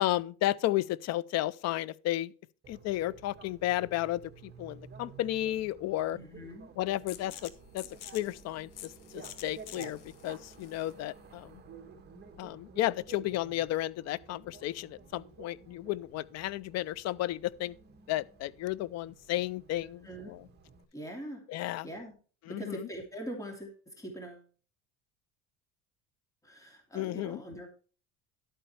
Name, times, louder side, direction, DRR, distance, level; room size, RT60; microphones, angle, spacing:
voice 1, 0.0-2.3 2.7-6.2 6.8-7.8 8.1-11.6 12.4-17.8 18.1-20.4 21.5-21.9 22.5-22.9 26.9-27.4, left 15 dB, 55° left, 0.5 m, -33 dB
Bicycle, 2.6-20.8, right 6 dB, 30° right, 2.0 m, -53 dB
voice 2, 6.1-6.7 20.0-20.4 20.9-21.4 21.8-22.2 22.5-24.4 26.4-27.7, right 1 dB, 10° left, 2.9 m, -42 dB
sound 1, 7.1-12.6, left 12 dB, 75° left, 1.2 m, -49 dB
11.5 x 8.9 x 3.3 m
cardioid pair, 135°, 32 cm